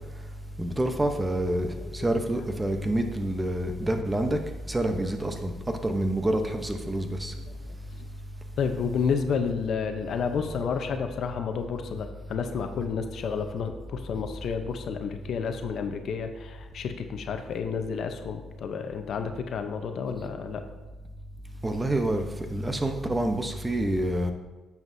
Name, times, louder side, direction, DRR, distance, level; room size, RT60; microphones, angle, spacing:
voice 1, 0.6-4.4 4.7-5.5 5.8-7.3 21.6-24.3, right 1 dB, 15° right, 6 dB, 0.9 m, -27 dB
voice 2, 8.6-20.6, left 6 dB, 65° left, 6 dB, 0.8 m, -31 dB
9.4 x 7.3 x 2.7 m, 1.2 s
cardioid pair, 90°, 0 cm